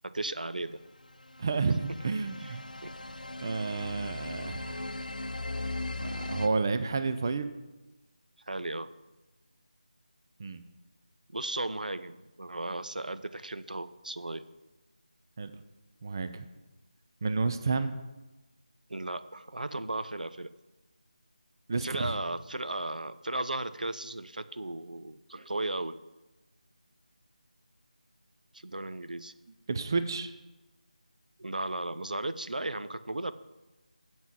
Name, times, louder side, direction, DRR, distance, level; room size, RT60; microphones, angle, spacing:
voice 1, 0.0-0.8 2.4-2.6 2.8-2.9 8.5-8.9 11.3-14.4 18.9-20.5 21.8-26.0 28.5-29.3 31.4-33.3, right 2 dB, 90° right, 12 dB, 0.6 m, -35 dB
sound 1, 1.1-6.5, left 2 dB, 80° left, 0.7 m, -38 dB
voice 2, 1.4-2.6 3.4-4.9 6.0-7.5 10.4-10.6 15.4-15.5 16.0-16.4 17.2-18.0 21.7-22.2 29.7-30.3, right 4 dB, 30° right, 10 dB, 0.5 m, -30 dB
7.2 x 6.1 x 7.5 m, 1.1 s
figure-of-eight pair, 170°, 4 cm